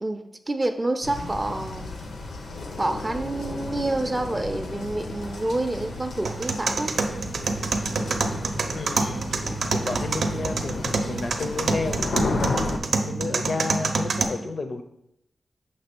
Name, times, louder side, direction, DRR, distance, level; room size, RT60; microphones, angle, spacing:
voice 1, 0.0-1.9 2.8-6.9, right 2 dB, 20° right, 7 dB, 0.4 m, -28 dB
sound 1, 1.0-12.8, left 2 dB, 85° left, 0.8 m, -33 dB
sound 2, 6.3-14.2, right 4 dB, 90° right, 0.6 m, -27 dB
voice 2, 8.7-9.3 9.7-14.8, left 3 dB, 45° left, 8 dB, 0.5 m, -32 dB
6.7 x 3.1 x 5.9 m, 0.80 s
wide cardioid pair, 180°, 0 cm